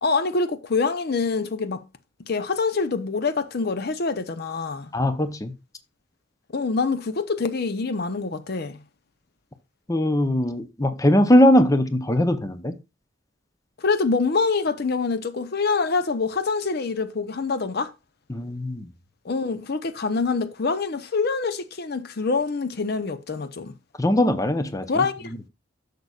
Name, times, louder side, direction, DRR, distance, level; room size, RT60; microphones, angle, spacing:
voice 1, 0.0-1.8 2.3-4.9 6.5-8.8 13.8-17.9 19.2-23.7 24.9-25.3, left 4 dB, 55° left, 0.6 m, -25 dB
voice 2, 4.9-5.5 9.9-12.8 18.3-18.9 24.0-25.0, left 1 dB, 15° left, 0.7 m, -20 dB
10.5 x 6.7 x 2.3 m
head